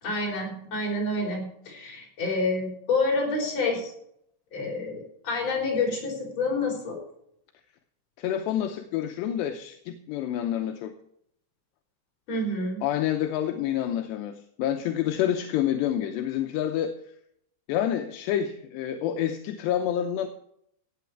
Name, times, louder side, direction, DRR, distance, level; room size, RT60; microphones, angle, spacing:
voice 1, 0.0-3.9 4.5-7.0 12.3-12.8, left 2 dB, 35° left, -1 dB, 5.5 m, -28 dB
voice 2, 8.2-11.0 12.8-17.0 17.7-20.3, left 10 dB, 80° left, 6 dB, 2.8 m, -28 dB
16.5 x 8.6 x 4.6 m, 0.72 s
omnidirectional pair, 5.2 m